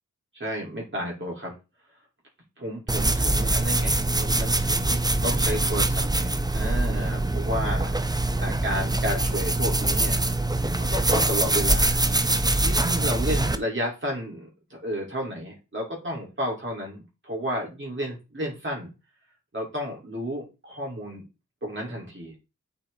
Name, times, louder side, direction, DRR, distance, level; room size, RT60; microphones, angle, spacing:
voice 1, 0.3-1.5 2.6-7.9 8.4-10.2 10.8-12.0 12.6-18.9 19.5-21.2 21.6-22.3, equal, 40° right, -3 dB, 3.9 m, -32 dB
sound 1, 2.9-13.6, right 2 dB, 15° right, 0.6 m, -24 dB
8.8 x 4.8 x 3.9 m, 0.28 s
wide cardioid pair, 95°, 31 cm